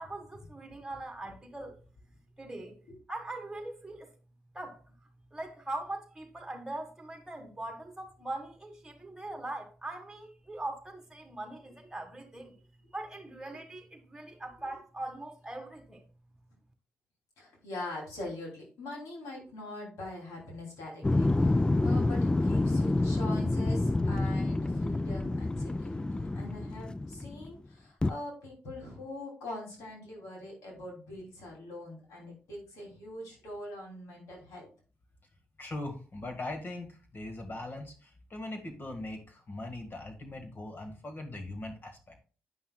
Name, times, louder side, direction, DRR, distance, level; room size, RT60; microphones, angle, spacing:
voice 1, 0.0-1.8 2.4-2.8 3.1-4.1 4.5-4.9 5.3-12.6 12.9-16.1, right 2 dB, 10° right, 1.7 m, -41 dB
voice 2, 17.4-34.7, left 1 dB, 85° left, 3.0 m, -43 dB
sound 1, 21.0-27.5 28.0-28.1, left 2 dB, 15° left, 0.4 m, -28 dB
voice 3, 35.6-42.1, left 2 dB, 40° left, 1.8 m, -40 dB
9.5 x 5.6 x 2.3 m
supercardioid pair, 60°, 5 cm